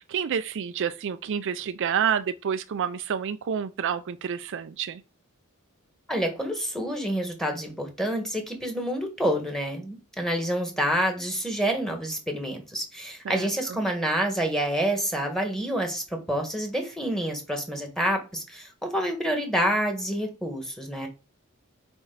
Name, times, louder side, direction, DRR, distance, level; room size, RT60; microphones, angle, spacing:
voice 1, 0.0-5.0 13.2-13.8, right 8 dB, 55° right, 0.4 m, -29 dB
voice 2, 6.1-21.1, equal, ahead, 1.6 m, -28 dB
9.0 x 4.4 x 4.0 m
head